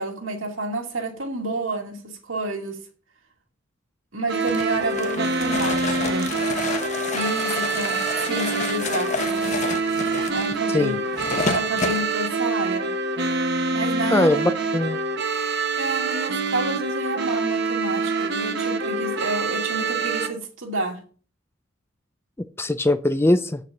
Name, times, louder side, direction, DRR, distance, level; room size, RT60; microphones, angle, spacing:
voice 1, 0.0-2.8 4.1-6.3 7.1-9.6 10.3-11.0 11.3-12.9 13.7-14.5 15.8-21.0, right 2 dB, 70° right, 3 dB, 2.4 m, -30 dB
sound 1, 4.3-20.3, right 3 dB, 50° right, 1.2 m, -26 dB
sound 2, 4.5-12.0, left 4 dB, 35° left, 1.0 m, -30 dB
voice 2, 14.1-15.0 22.6-23.6, left 1 dB, 10° left, 11 dB, 0.4 m, -21 dB
8.2 x 6.5 x 7.1 m, 0.42 s
head